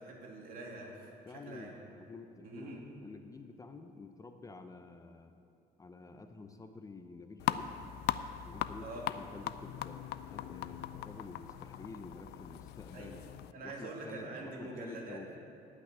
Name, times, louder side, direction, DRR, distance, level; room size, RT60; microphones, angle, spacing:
voice 1, 0.0-1.7 2.4-2.8 8.8-9.1 12.9-13.1 13.5-15.2, right 2 dB, 60° right, -1 dB, 2.4 m, -45 dB
voice 2, 1.3-5.3 5.8-7.8 8.4-10.0 10.3-13.2 13.6-15.4, left 3 dB, 20° left, 7 dB, 0.6 m, -49 dB
sound 1, 7.4-13.5, left 12 dB, 75° left, 0.4 m, -39 dB
10.5 x 6.1 x 8.9 m, 2.7 s
cardioid pair, 110°, 17 cm